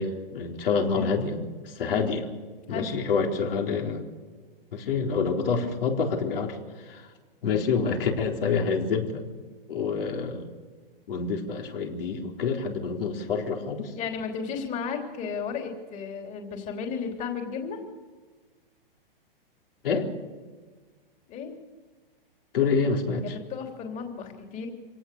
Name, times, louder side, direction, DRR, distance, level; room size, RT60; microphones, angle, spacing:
voice 1, 0.0-2.3 2.7-4.0 4.7-7.1 7.4-9.2 9.7-10.5 11.1-13.9 19.8-20.1 22.5-23.4, left 5 dB, 70° left, 1 dB, 4.2 m, -27 dB
voice 2, 2.7-3.1 14.0-17.8 21.3-21.5 23.2-24.7, left 6 dB, 25° left, 3 dB, 3.3 m, -34 dB
25.5 x 18.0 x 7.0 m, 1.4 s
hypercardioid pair, 145°, 29 cm